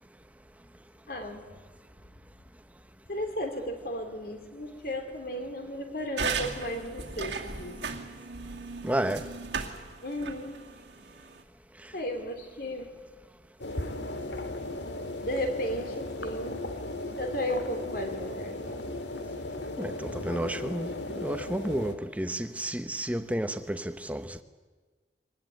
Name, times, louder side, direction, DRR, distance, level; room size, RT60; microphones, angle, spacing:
voice 1, 1.1-1.5 3.1-7.9 10.0-10.6 11.9-12.9 15.2-16.6 17.2-19.0, left 1 dB, 55° left, 3.4 m, -34 dB
sound 1, 6.2-11.4, right 5 dB, 80° right, 2.4 m, -36 dB
voice 2, 8.8-9.2 19.8-20.9 21.2-24.4, right 1 dB, 10° right, 0.9 m, -31 dB
sound 2, 13.6-21.9, left 2 dB, 80° left, 2.0 m, -36 dB
23.5 x 19.5 x 9.4 m
head